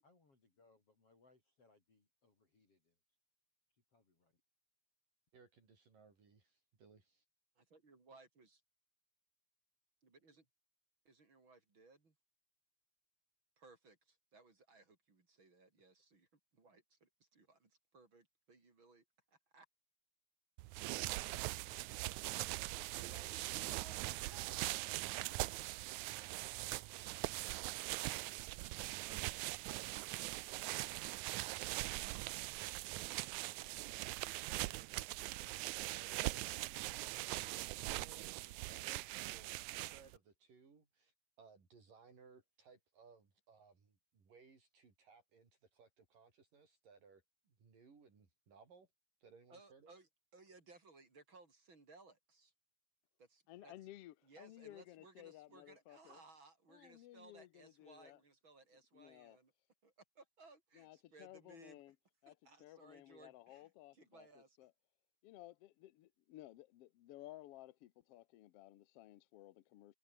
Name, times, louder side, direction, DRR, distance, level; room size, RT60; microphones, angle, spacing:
voice 1, 0.0-3.0 3.7-4.4, left 3 dB, 40° left, 6.4 m, -72 dB
voice 2, 5.3-7.3 29.1-30.2 30.5-30.6 35.8-48.9 49.2-49.9, right 5 dB, 70° right, 7.0 m, -63 dB
voice 3, 7.5-8.6 10.0-10.5 11.0-12.1 13.6-19.7 22.8-24.8 49.5-52.5 53.2-53.7 54.2-59.5 59.8-61.8 62.3-64.6, right 3 dB, 35° right, 4.7 m, -63 dB
sound 1, 20.6-40.2, right 19 dB, 85° right, 1.7 m, -42 dB
voice 4, 53.5-56.2 56.7-58.2 58.9-59.4 60.7-61.9 62.2-64.7 65.2-69.9, left 15 dB, 85° left, 1.3 m, -57 dB
omnidirectional pair, 4.0 m